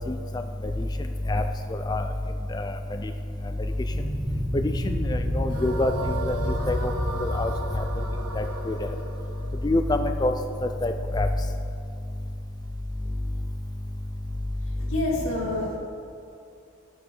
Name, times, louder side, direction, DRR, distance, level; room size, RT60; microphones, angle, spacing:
sound 1, 3.9-8.6, equal, 35° right, 2.3 m, -30 dB
voice 1, 4.5-5.9 6.3-6.4 6.7-6.9 7.2-7.8 8.4-8.8 9.6-11.3, left 2 dB, 20° left, 6 dB, 0.3 m, -26 dB
sound 2, 5.5-10.7, right 2 dB, 85° right, 1.1 m, -36 dB
voice 2, 14.6-15.8, left 1 dB, 70° left, -6 dB, 2.7 m, -28 dB
14.0 x 7.1 x 3.9 m, 2.6 s
head